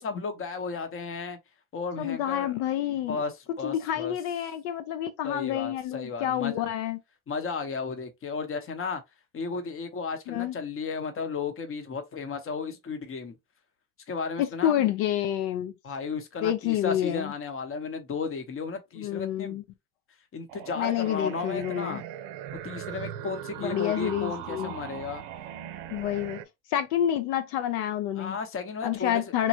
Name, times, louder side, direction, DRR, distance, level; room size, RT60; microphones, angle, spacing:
voice 1, 0.0-1.4 1.7-4.1 5.2-6.7 7.3-9.0 9.3-13.4 14.1-14.9 15.8-19.6 20.3-22.1 22.6-25.2 28.2-29.2, left 4 dB, 30° left, 0.7 m, -34 dB
voice 2, 2.0-3.2 3.6-7.0 10.3-10.5 14.4-15.7 16.4-17.3 19.0-19.6 20.8-22.0 23.6-24.7 25.9-26.4 26.7-28.4 28.8-29.5, left 11 dB, 75° left, 0.6 m, -28 dB
sound 1, 20.5-26.4, right 10 dB, 65° right, 0.6 m, -39 dB
3.1 x 2.2 x 2.7 m
supercardioid pair, 80°, 46 cm